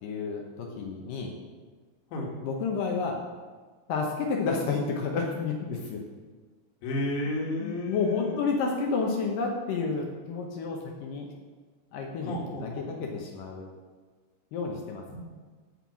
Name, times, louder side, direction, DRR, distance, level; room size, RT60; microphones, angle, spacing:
voice 1, 0.0-1.3 2.4-3.3 3.9-6.0 7.6-11.3 11.9-13.7 14.5-15.0, left 4 dB, 80° left, 0 dB, 2.0 m, -30 dB
voice 2, 6.8-8.4 12.2-13.1 15.1-15.2, left 1 dB, 60° left, -1 dB, 2.9 m, -32 dB
8.9 x 5.6 x 7.3 m, 1.4 s
omnidirectional pair, 5.1 m